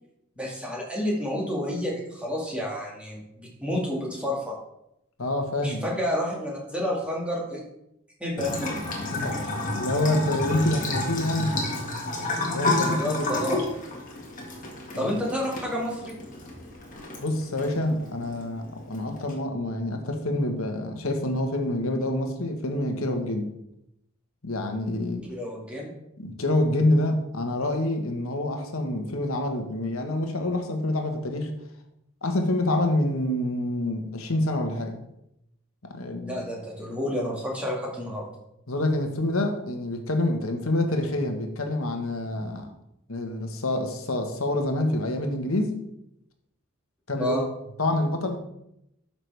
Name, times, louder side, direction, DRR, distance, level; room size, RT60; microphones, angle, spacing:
voice 1, 0.4-4.5 5.6-7.6 8.2-8.7 12.8-13.6 14.9-16.2 25.3-25.9 36.2-38.3 47.1-47.4, equal, 5° right, -3 dB, 2.1 m, -30 dB
voice 2, 5.2-5.9 9.1-11.6 12.5-13.2 14.9-15.1 17.2-23.5 24.4-25.2 26.2-31.5 32.2-35.0 35.8-36.4 38.7-42.7 43.1-45.8 47.1-47.5 47.8-48.4, left 1 dB, 75° left, 4 dB, 1.4 m, -27 dB
Bathtub (filling or washing) / Trickle dribble, 8.4-19.3, left 2 dB, 35° left, 1.8 m, -31 dB
12.5 x 5.9 x 3.5 m, 0.81 s
head